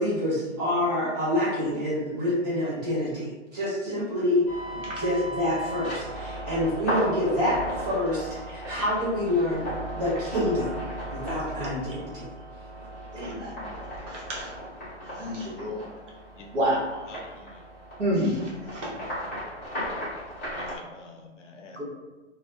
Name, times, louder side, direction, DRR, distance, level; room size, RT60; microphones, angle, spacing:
voice 1, 0.0-4.4 4.7-9.6 9.9-10.7 11.1-12.3, left 1 dB, 35° right, -9 dB, 1.2 m, -27 dB
sound 1, 4.5-20.8, equal, 10° left, 0.5 m, -36 dB
voice 2, 13.1-13.5 14.1-14.5 15.2-15.8 16.5-16.8 18.0-18.4 18.7-18.9 21.8-21.9, equal, 70° right, -5 dB, 1.0 m, -28 dB
voice 3, 17.1-17.6 20.6-21.8, left 4 dB, 75° left, 3 dB, 0.6 m, -47 dB
2.5 x 2.1 x 2.3 m, 1.2 s
hypercardioid pair, 165°, 37 cm